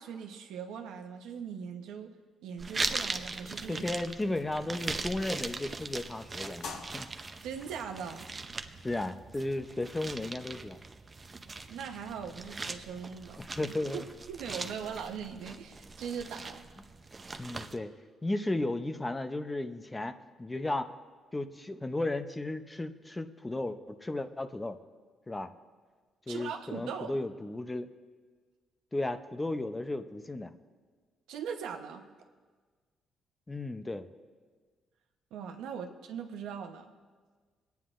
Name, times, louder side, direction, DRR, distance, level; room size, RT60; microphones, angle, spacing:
voice 1, 0.0-2.1 2.4-3.8 7.4-8.3 11.7-16.6 26.3-27.2 31.3-32.0 35.3-36.9, right 7 dB, 90° right, 4 dB, 0.9 m, -40 dB
sound 1, 2.6-17.8, right 3 dB, 30° right, 0.6 m, -40 dB
voice 2, 3.7-7.1 8.8-10.8 13.4-14.0 17.4-17.9 18.2-20.1 20.4-20.9 21.3-24.8 25.3-25.5 26.3-27.9 28.9-30.5 33.5-34.1, left 2 dB, 15° left, 9 dB, 0.6 m, -34 dB
sound 2, 5.1-10.6, left 4 dB, 80° left, 1.6 m, -51 dB
23.5 x 9.3 x 2.5 m, 1.5 s
cardioid pair, 90°, 0 cm